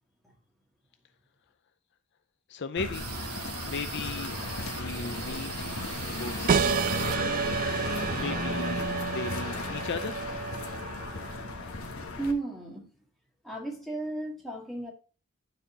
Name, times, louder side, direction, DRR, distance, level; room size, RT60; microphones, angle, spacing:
voice 1, 2.5-3.0 3.6-7.0 8.1-10.1, left 4 dB, 50° left, 0.5 m, -37 dB
sound 1, 2.8-12.3, left 3 dB, 65° left, 1.3 m, -35 dB
sound 2, 2.9-8.4, right 9 dB, 85° right, 0.7 m, -41 dB
sound 3, 6.5-11.7, right 7 dB, 40° right, 0.3 m, -31 dB
voice 2, 12.2-12.9 13.4-14.9, right 2 dB, ahead, 1.9 m, -34 dB
11.5 x 4.3 x 3.8 m
head